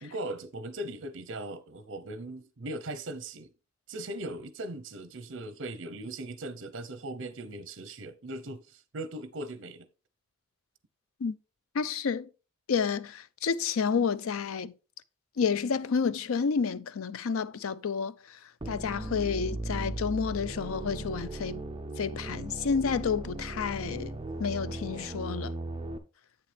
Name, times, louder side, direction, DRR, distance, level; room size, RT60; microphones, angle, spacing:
voice 1, 0.0-3.5 3.9-9.9, right 1 dB, 65° right, 0.7 m, -39 dB
voice 2, 11.7-12.3 12.7-14.7 15.4-18.1 18.7-21.6 22.0-25.5, left 6 dB, 90° left, 0.5 m, -30 dB
sound 1, 18.6-26.0, right 2 dB, 25° right, 0.5 m, -37 dB
8.1 x 6.7 x 3.3 m
head